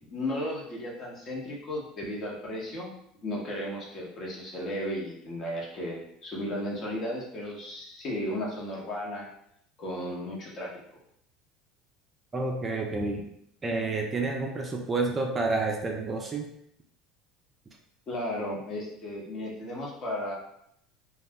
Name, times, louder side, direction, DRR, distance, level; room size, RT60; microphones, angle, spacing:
voice 1, 0.1-2.9 3.2-9.3 9.8-10.8 18.1-20.3, left 1 dB, 40° left, -3 dB, 1.0 m, -34 dB
voice 2, 12.3-13.3 13.6-16.5, right 3 dB, 25° right, 1 dB, 0.4 m, -29 dB
2.3 x 2.0 x 3.5 m, 0.72 s
supercardioid pair, 105°, 0 cm